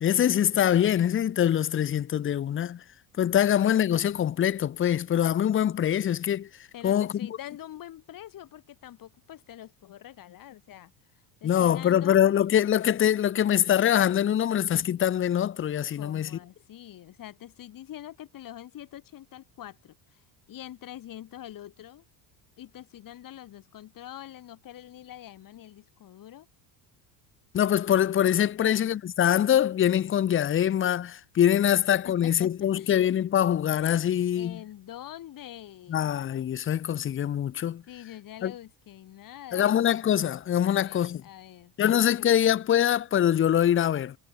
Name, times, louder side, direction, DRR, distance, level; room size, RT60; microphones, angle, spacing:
voice 1, 0.0-2.8 3.2-6.5 6.8-7.1 11.4-16.4 27.5-34.6 35.9-37.8 38.4-38.5 39.5-41.2 41.8-44.2, left 10 dB, 30° left, 0.7 m, -24 dB
voice 2, 6.7-10.9 11.4-12.2 16.0-20.2 20.5-22.1 22.6-26.5 28.6-28.8 32.0-33.0 34.4-36.1 37.9-39.8 40.7-42.5, left 12 dB, 45° left, 2.5 m, -45 dB
supercardioid pair, 110°, 45 cm